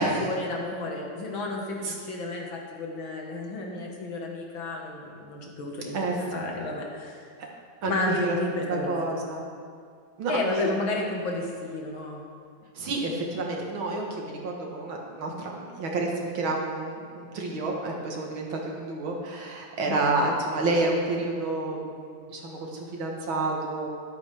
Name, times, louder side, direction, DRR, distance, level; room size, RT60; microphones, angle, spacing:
voice 1, 0.0-7.3 7.8-9.0 10.3-12.2 19.9-20.0, left 2 dB, 80° left, 0 dB, 2.3 m, -32 dB
voice 2, 5.9-6.5 7.4-7.5 7.8-8.4 8.7-9.4 10.2-10.8 12.7-23.9, right 2 dB, 90° right, 0 dB, 2.3 m, -29 dB
13.0 x 11.5 x 3.5 m, 2.1 s
omnidirectional pair, 2.1 m